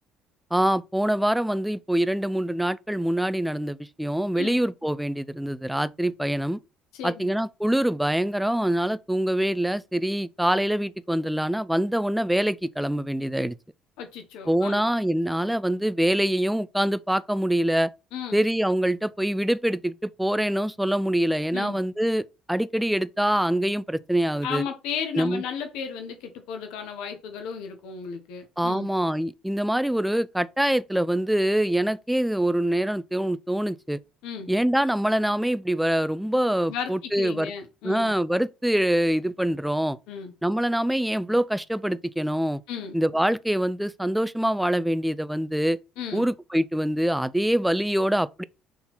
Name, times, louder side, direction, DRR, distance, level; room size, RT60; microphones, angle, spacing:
voice 1, 0.5-6.6 7.0-13.6 14.5-17.9 18.3-24.6 25.1-25.4 28.6-34.0 34.5-37.5 37.8-40.0 40.4-42.6 42.9-45.8 46.1-48.4, right 1 dB, 5° right, 0.3 m, -24 dB
voice 2, 6.9-7.3 14.0-14.9 18.1-18.4 21.5-21.8 24.4-28.9 34.2-34.5 36.7-38.1 40.1-40.3 42.7-43.0 46.0-46.3, left 7 dB, 75° left, 0.8 m, -34 dB
3.9 x 2.8 x 4.1 m
supercardioid pair, 75°, 0 cm